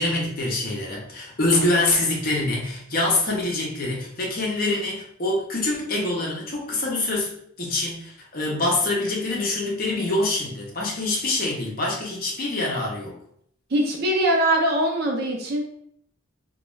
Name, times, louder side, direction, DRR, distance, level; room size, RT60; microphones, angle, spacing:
voice 1, 0.0-13.2, left 2 dB, 45° left, -2 dB, 0.7 m, -25 dB
voice 2, 13.7-15.7, right 1 dB, 50° right, 0 dB, 0.5 m, -22 dB
2.3 x 2.2 x 3.0 m, 0.66 s
head